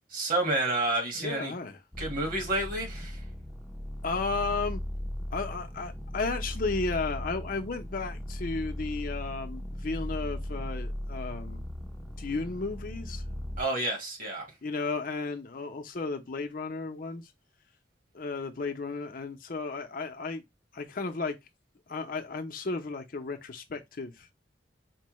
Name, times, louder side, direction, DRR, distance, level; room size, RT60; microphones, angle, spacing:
voice 1, 0.1-1.5 2.0-3.2 13.6-14.5, right 2 dB, 50° right, 1.4 m, -29 dB
voice 2, 1.2-1.8 4.0-4.8 5.3-11.6 12.2-13.2 14.6-17.3 18.1-20.4 20.7-21.4 21.9-24.3, left 3 dB, 50° left, 0.6 m, -34 dB
sound 1, 1.9-13.6, equal, ahead, 0.5 m, -37 dB
4.5 x 2.1 x 3.0 m
head